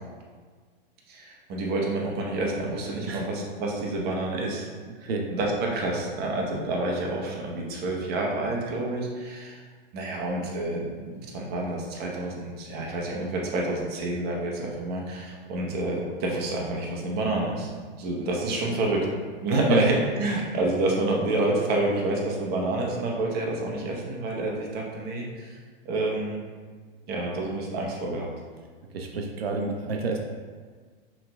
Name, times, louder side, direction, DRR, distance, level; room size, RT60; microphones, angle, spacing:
voice 1, 1.1-4.7 5.0-9.6 9.9-17.7 18.0-19.1 19.4-25.6 25.8-26.4 27.1-28.3, right 2 dB, 35° right, -1 dB, 0.9 m, -28 dB
voice 2, 28.9-30.2, right 3 dB, 85° right, 2 dB, 0.5 m, -28 dB
5.5 x 3.2 x 2.3 m, 1.6 s
hypercardioid pair, 110°, 30 cm